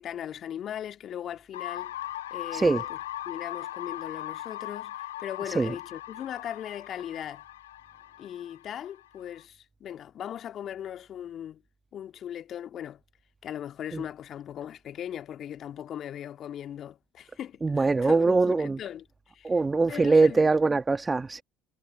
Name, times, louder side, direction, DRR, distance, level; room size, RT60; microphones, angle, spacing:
voice 1, 0.0-1.9 2.3-3.0 3.3-7.4 8.2-11.6 11.9-13.0 13.4-19.0 19.3-19.5 19.9-20.5, left 10 dB, 45° left, 1.9 m, -38 dB
sound 1, 1.5-9.4, left 14 dB, 80° left, 1.1 m, -39 dB
voice 2, 2.5-2.8 5.4-5.7 13.9-14.1 17.6-18.8 19.4-21.4, right 3 dB, 20° right, 1.6 m, -23 dB
figure-of-eight pair, 60°, 0 cm